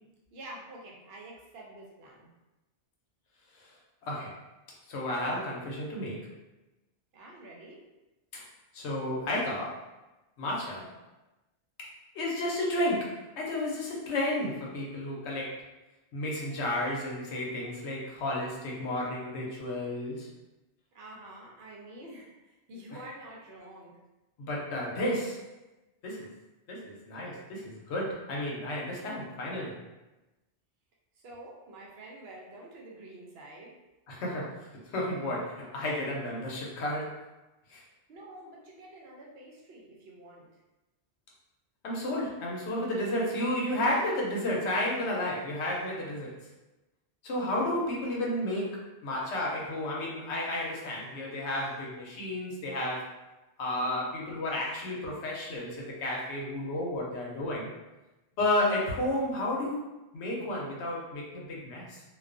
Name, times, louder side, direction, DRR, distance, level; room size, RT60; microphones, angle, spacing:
voice 1, 0.3-2.3 7.1-7.8 20.9-23.9 31.2-33.7 38.1-40.6, right 1 dB, 70° right, -2 dB, 0.8 m, -48 dB
voice 2, 4.0-4.4 4.9-6.3 8.3-8.4 8.7-9.8 10.4-10.9 11.8-15.6 16.1-20.3 24.4-25.4 26.0-26.3 26.7-29.8 34.1-37.2 37.7-37.8 41.8-46.3 47.2-53.2 53.6-57.7 58.4-59.9 60.1-62.0, left 1 dB, 80° left, -3 dB, 0.9 m, -32 dB
2.2 x 2.2 x 2.4 m, 1.0 s
omnidirectional pair, 1.2 m